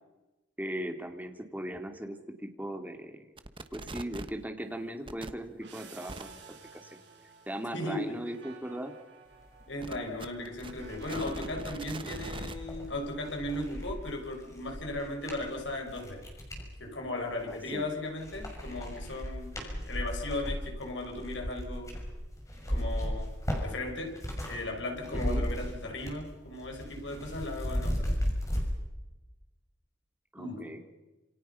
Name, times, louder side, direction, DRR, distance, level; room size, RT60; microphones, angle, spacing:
voice 1, 0.6-3.2 3.7-6.4 6.7-6.8 7.5-8.9 17.5-17.9 25.1-25.5 30.3-31.0, right 1 dB, 10° right, 4 dB, 2.5 m, -38 dB
sound 1, 3.4-4.4 5.1-5.3 6.1-6.2 9.8-12.6, right 2 dB, 30° right, 1.2 m, -41 dB
sound 2, 5.6-14.1, right 3 dB, 70° right, 5.4 m, -52 dB
voice 2, 7.7-8.2 9.7-16.3 16.8-21.9 22.7-24.2 24.5-28.2 30.4-30.8, left 1 dB, 80° left, 2 dB, 5.7 m, -37 dB
sound 3, 10.0-10.1 10.5-16.7 17.3-17.9 18.2-24.6 24.9-26.3 26.5-28.6, equal, 15° left, 6.3 m, -36 dB
28.0 x 27.5 x 5.8 m, 1.1 s
head